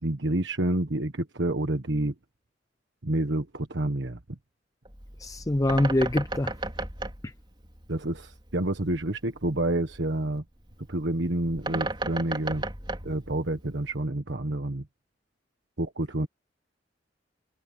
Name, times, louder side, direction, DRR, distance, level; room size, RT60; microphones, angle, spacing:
voice 1, 0.0-2.1 3.0-4.4 7.9-10.4 10.9-12.6 13.0-14.9 15.8-16.3, right 1 dB, 75° right, 1.4 m, -28 dB
Bird, 4.8-14.0, right 2 dB, 25° right, 4.1 m, -36 dB
voice 2, 5.2-6.5, left 1 dB, 20° left, 0.5 m, -24 dB
head